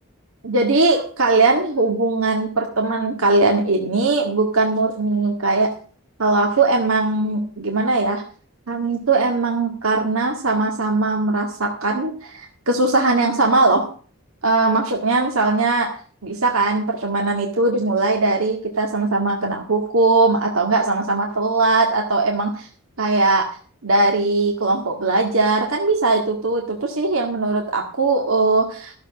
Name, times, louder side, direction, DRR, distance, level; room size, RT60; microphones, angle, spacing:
voice 1, 0.4-5.7 6.2-8.2 8.7-13.9 14.4-15.9 16.2-22.7 23.0-23.5 23.8-28.9, right 3 dB, 75° right, 1 dB, 2.0 m, -20 dB
14.0 x 7.1 x 7.1 m, 0.43 s
head